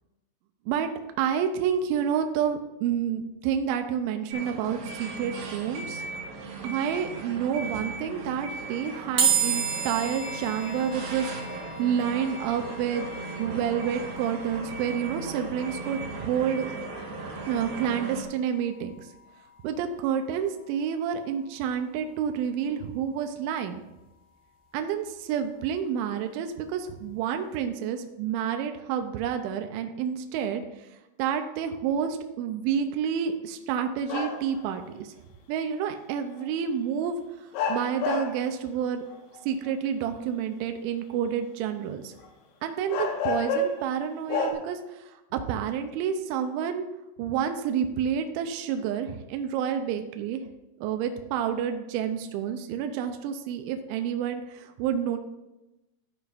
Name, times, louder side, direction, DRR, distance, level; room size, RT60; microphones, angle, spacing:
voice 1, 1.2-6.0 6.6-13.1 13.4-16.7 17.5-18.9 19.6-23.8 24.7-30.9 31.2-35.1 35.5-39.0 39.5-42.1 42.6-46.9 47.2-50.4 50.8-55.2, right 8 dB, 85° right, 6 dB, 2.8 m, -29 dB
sound 1, 4.3-18.2, right 3 dB, 65° right, 2.6 m, -37 dB
sound 2, 9.2-22.5, right 6 dB, 35° right, 1.0 m, -35 dB
sound 3, 34.1-34.6 36.4-36.5 37.5-38.5 39.1-39.7 42.2-42.3 42.9-43.9 44.3-44.5, left 3 dB, 80° left, 3.8 m, -29 dB
14.0 x 9.3 x 2.6 m, 0.98 s
omnidirectional pair, 6.0 m